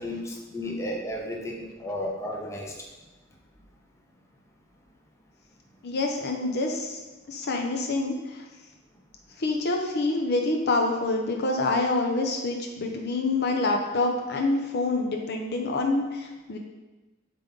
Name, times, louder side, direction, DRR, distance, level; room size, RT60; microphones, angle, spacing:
voice 1, 0.0-2.7, left 1 dB, 15° left, -1 dB, 0.8 m, -33 dB
voice 2, 5.8-8.4 9.4-16.6, left 2 dB, 50° left, 2 dB, 0.6 m, -27 dB
7.6 x 3.7 x 3.8 m, 1.2 s
head